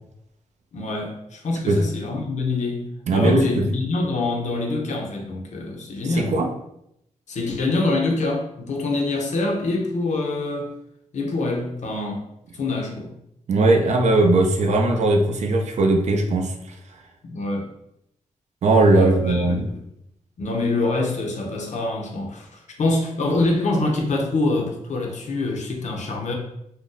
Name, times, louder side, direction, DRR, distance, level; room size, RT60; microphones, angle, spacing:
voice 1, 0.7-6.4 7.3-10.7 11.1-12.2 12.5-13.2 17.2-17.7 18.9-19.8 20.4-26.3, left 2 dB, 65° left, 1 dB, 0.6 m, -25 dB
voice 2, 3.1-3.6 6.2-6.5 13.5-16.5 18.6-19.6, right 2 dB, 60° right, 3 dB, 0.5 m, -18 dB
2.6 x 2.2 x 3.7 m, 0.78 s
wide cardioid pair, 130°, 13 cm